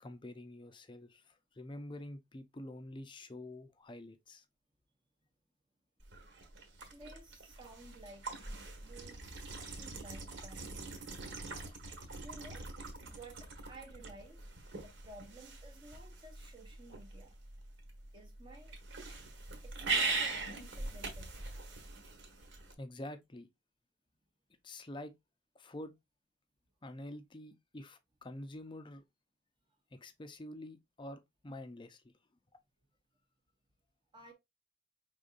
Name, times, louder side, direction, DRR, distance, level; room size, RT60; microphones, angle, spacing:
voice 1, 0.0-4.4 22.8-23.5 24.6-25.1 25.5-25.9 26.8-29.0 29.9-32.1, left 1 dB, 25° left, 0.5 m, -47 dB
sound 1, 6.0-22.7, right 3 dB, 70° right, 1.3 m, -42 dB
voice 2, 6.9-10.8 12.2-12.7 13.0-14.4 14.8-17.4 18.1-18.8 19.6-21.3 34.1-34.3, right 2 dB, 25° right, 0.8 m, -55 dB
5.2 x 3.6 x 2.4 m
head